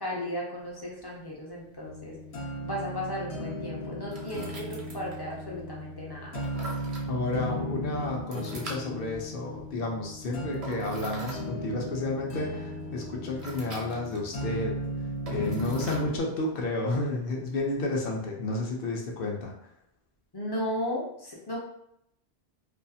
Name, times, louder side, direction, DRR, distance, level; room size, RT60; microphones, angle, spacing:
voice 1, 0.0-2.2 2.6-6.3 20.3-21.6, left 1 dB, 35° left, -3 dB, 0.4 m, -35 dB
sound 1, 0.6-18.1, right 2 dB, 45° right, 0.5 m, -47 dB
sound 2, 1.8-16.2, equal, 85° left, 0.9 m, -36 dB
voice 2, 7.1-14.7 15.3-19.5, left 2 dB, 65° left, 0 dB, 0.8 m, -31 dB
2.4 x 2.3 x 2.6 m, 0.75 s
omnidirectional pair, 1.1 m